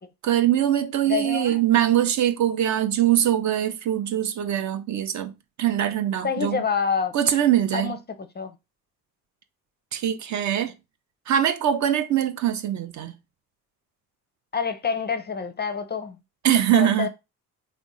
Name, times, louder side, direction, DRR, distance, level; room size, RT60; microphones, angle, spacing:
voice 1, 0.2-5.3 5.6-6.6 7.1-7.9 9.9-10.7 11.3-13.1 16.4-17.1, right 11 dB, 45° right, 0.5 m, -22 dB
voice 2, 1.0-1.6 6.2-7.1 7.7-8.5 14.5-16.2 16.7-17.1, left 6 dB, 25° left, 0.5 m, -27 dB
3.5 x 2.1 x 3.9 m
hypercardioid pair, 45°, 42 cm